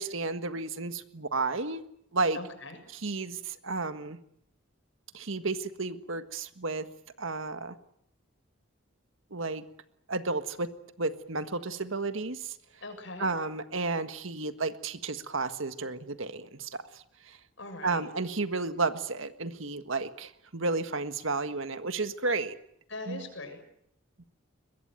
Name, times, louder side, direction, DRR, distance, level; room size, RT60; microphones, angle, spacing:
voice 1, 0.0-1.8 2.1-2.4 2.9-4.2 5.1-6.8 7.2-7.7 9.3-9.6 10.1-10.7 11.0-12.5 13.2-17.4 17.8-22.6 23.1-23.2, right 3 dB, 75° right, 10 dB, 1.6 m, -32 dB
voice 2, 2.3-2.8 12.8-13.3 17.6-18.1 22.9-23.6, left 2 dB, 65° left, 7 dB, 6.6 m, -41 dB
22.5 x 21.5 x 9.2 m, 0.73 s
head